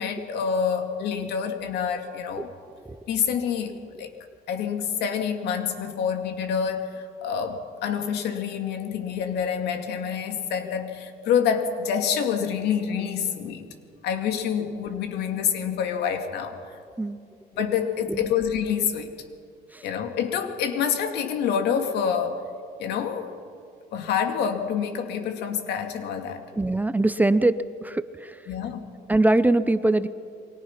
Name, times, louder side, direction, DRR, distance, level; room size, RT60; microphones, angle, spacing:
voice 1, 0.0-2.5 3.1-4.1 4.5-13.7 14.0-16.6 17.6-19.1 19.8-22.4 22.8-23.4 23.9-26.4 28.5-28.8, left 7 dB, 80° left, 6 dB, 2.4 m, -27 dB
voice 2, 26.6-28.4 29.1-30.1, right 2 dB, 10° right, 13 dB, 0.7 m, -22 dB
29.0 x 23.5 x 5.9 m, 2.3 s
cardioid pair, 110°, 17 cm